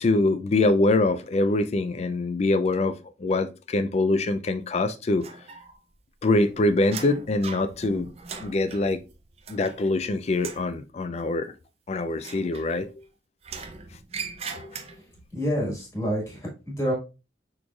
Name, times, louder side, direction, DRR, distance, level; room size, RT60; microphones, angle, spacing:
voice 1, 0.0-2.9 3.2-5.2 6.2-8.1 8.4-9.0 9.5-11.5 11.9-12.9 14.5-14.7, left 2 dB, 35° left, 0.3 m, -24 dB
sound 1, 5.2-6.0 6.3-10.0 10.3-10.7 12.1-13.0 13.4-15.2, right 5 dB, 35° right, 0.4 m, -40 dB
voice 2, 15.3-16.9, equal, 15° left, 1.4 m, -28 dB
6.2 x 3.1 x 2.3 m
head